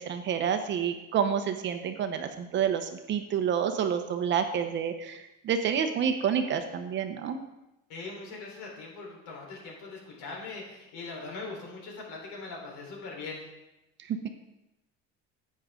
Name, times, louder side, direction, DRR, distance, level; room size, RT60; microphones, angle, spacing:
voice 1, 0.1-7.4 14.1-14.3, right 8 dB, 40° right, 7 dB, 0.8 m, -29 dB
voice 2, 7.9-13.4, left 3 dB, 70° left, -2 dB, 4.0 m, -41 dB
11.0 x 8.7 x 3.7 m, 0.93 s
cardioid pair, 160°, 30 cm